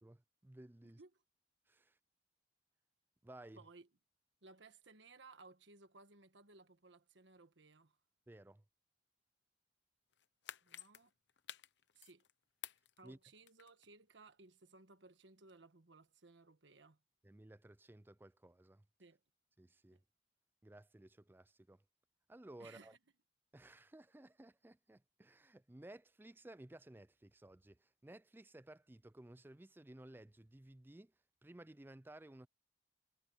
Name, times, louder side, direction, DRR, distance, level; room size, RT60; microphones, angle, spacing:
voice 1, 0.4-1.0 1.7-2.0 3.2-3.6 8.3-8.6 13.0-13.2 17.2-18.9 19.6-20.0 20.6-21.8 22.3-23.0 23.5-31.1 31.4-32.5, right 1 dB, 10° right, 0.4 m, -57 dB
voice 2, 3.6-3.9 4.4-8.0 10.6-11.1 11.9-12.3 13.0-17.0 19.0-19.2 19.9-20.0 22.6-23.0, right 3 dB, 90° right, 1.4 m, -61 dB
sound 1, 10.1-12.3 12.6-13.9 14.3-14.4, left 11 dB, 75° left, 0.8 m, -52 dB
head